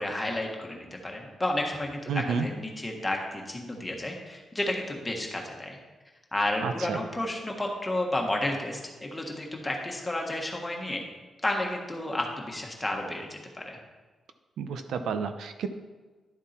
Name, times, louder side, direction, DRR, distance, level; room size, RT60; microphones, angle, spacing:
voice 1, 0.0-5.8 6.3-11.0 11.4-13.4 13.6-13.8, left 1 dB, 10° left, 0 dB, 1.5 m, -31 dB
voice 2, 2.1-2.5 6.6-7.0 14.6-15.7, right 6 dB, 85° right, 8 dB, 0.7 m, -30 dB
11.5 x 7.2 x 4.4 m, 1.3 s
wide cardioid pair, 145°, 0 cm